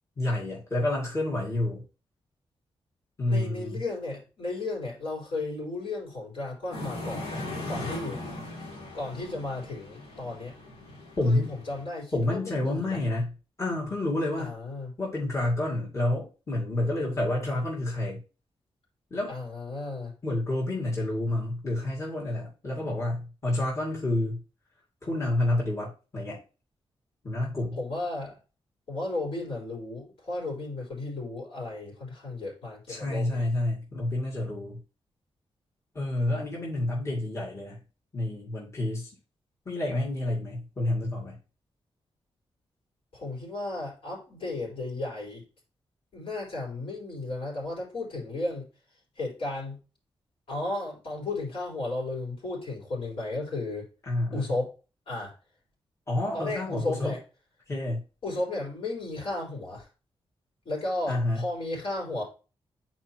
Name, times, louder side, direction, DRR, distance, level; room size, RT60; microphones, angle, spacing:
voice 1, 0.2-1.8 3.2-3.8 11.2-11.5 12.1-13.3 13.6-14.5 15.0-18.2 19.1-19.3 20.2-24.4 25.0-26.4 27.2-27.8 32.9-34.8 35.9-37.8 38.1-39.1 39.7-41.4 54.1-54.5 56.1-57.1 57.7-58.0 61.1-61.4, left 1 dB, 30° left, -6 dB, 2.5 m, -29 dB
voice 2, 3.3-8.2 8.9-10.5 11.3-13.0 14.4-14.9 19.3-20.1 27.8-28.4 28.9-33.5 43.1-45.4 46.1-48.7 49.2-49.8 50.5-53.8 54.3-54.7 55.1-55.3 56.3-57.2 58.2-59.9 60.6-62.2, left 2 dB, 70° left, -5 dB, 4.2 m, -34 dB
sound 1, 6.7-11.8, left 2 dB, 90° left, 2.7 m, -39 dB
9.7 x 4.5 x 3.0 m, 0.34 s
wide cardioid pair, 110°, 10 cm